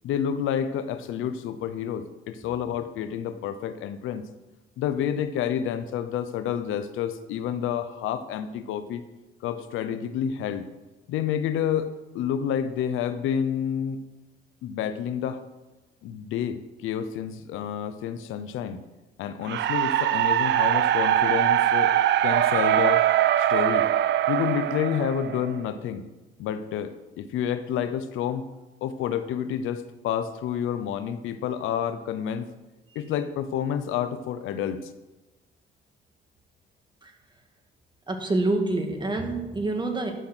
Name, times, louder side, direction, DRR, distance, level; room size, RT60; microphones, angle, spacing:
voice 1, 0.0-4.2 4.8-9.0 9.4-10.7 11.1-14.0 14.6-15.4 16.0-18.8 19.2-21.9 22.2-23.0 23.5-23.9 24.3-26.1 26.4-28.5 28.8-32.5 32.9-34.8, left 9 dB, 90° left, 11 dB, 0.7 m, -29 dB
sound 1, 19.5-25.6, right 12 dB, 65° right, 0.5 m, -22 dB
voice 2, 38.1-40.1, right 2 dB, 25° right, 4 dB, 1.9 m, -26 dB
12.5 x 5.8 x 6.2 m, 1.1 s
cardioid pair, 90°, 20 cm